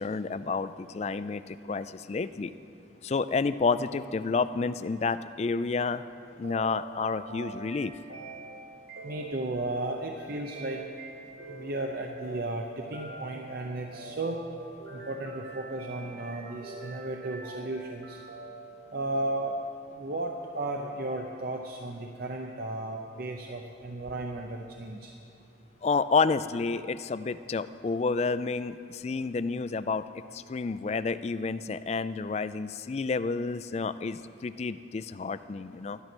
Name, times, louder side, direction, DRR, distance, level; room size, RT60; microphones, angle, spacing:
voice 1, 0.0-2.5 3.0-6.0 6.4-7.9 25.8-30.0 30.3-36.0, left 4 dB, 35° left, 14 dB, 0.3 m, -30 dB
sound 1, 6.4-18.8, right 3 dB, 70° right, 2.8 m, -45 dB
voice 2, 9.0-10.8 11.5-14.4 14.9-18.2 18.9-19.6 20.0-25.1, right 2 dB, 50° right, 2 dB, 0.7 m, -34 dB
13.0 x 11.0 x 6.1 m, 2.6 s
head